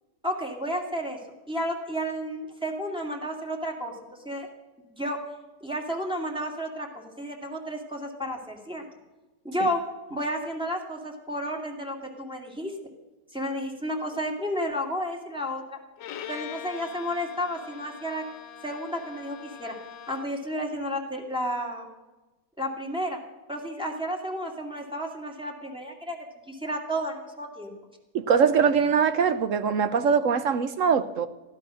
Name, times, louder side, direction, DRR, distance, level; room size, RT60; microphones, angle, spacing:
voice 1, 0.2-1.2 1.5-3.9 4.2-4.5 4.9-5.2 5.6-8.9 9.4-9.8 10.1-12.7 13.3-15.8 16.3-18.2 18.6-19.8 20.1-21.9 22.6-23.2 23.5-26.2 26.5-27.7, equal, 5° right, 0 dB, 2.3 m, -32 dB
Bowed string instrument, 16.0-20.5, left 10 dB, 75° left, 1.5 m, -42 dB
voice 2, 28.1-31.3, right 6 dB, 60° right, 11 dB, 0.9 m, -22 dB
15.5 x 12.0 x 6.3 m, 1.1 s
omnidirectional pair, 1.9 m